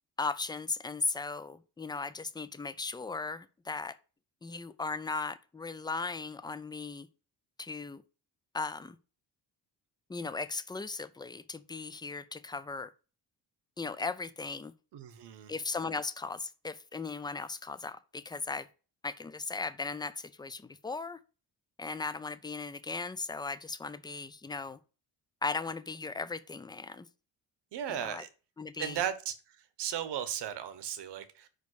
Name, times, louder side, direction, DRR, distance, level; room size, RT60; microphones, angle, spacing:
voice 1, 0.2-4.0 4.4-7.1 7.6-8.0 8.5-9.0 10.1-12.9 13.8-14.7 15.5-18.7 19.0-21.2 21.8-24.8 25.4-27.1 27.9-28.2 28.6-29.0, left 4 dB, 10° left, 0.3 m, -37 dB
voice 2, 14.9-15.5 27.7-28.3 28.8-31.5, right 9 dB, 75° right, 1.1 m, -36 dB
5.3 x 5.2 x 6.3 m
cardioid pair, 140°, 42 cm